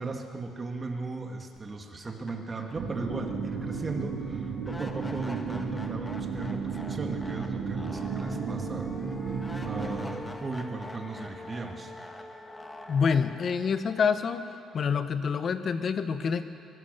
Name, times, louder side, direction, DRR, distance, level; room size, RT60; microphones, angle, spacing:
voice 1, 0.0-8.9 9.3-11.9, right 3 dB, 25° right, 3 dB, 2.1 m, -37 dB
sound 1, 1.6-1.7 2.0-15.1, left 2 dB, 10° left, 1.6 m, -45 dB
sound 2, 2.7-10.0, right 5 dB, 65° right, 3.5 m, -34 dB
voice 2, 12.9-14.4 14.7-16.5, left 6 dB, 40° left, 10 dB, 1.1 m, -27 dB
23.5 x 19.5 x 6.9 m, 2.4 s
cardioid pair, 135°, 0 cm